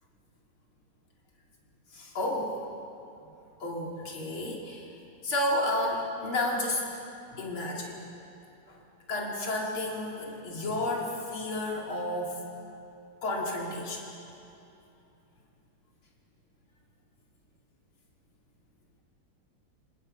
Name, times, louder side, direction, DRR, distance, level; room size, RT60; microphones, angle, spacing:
voice 1, 1.9-2.5 3.6-4.9 5.2-6.8 7.3-8.0 8.7-8.8 9.1-12.4 13.2-14.0, left 1 dB, 80° left, -2 dB, 3.3 m, -31 dB
28.0 x 27.0 x 5.5 m, 2.8 s
omnidirectional pair, 2.3 m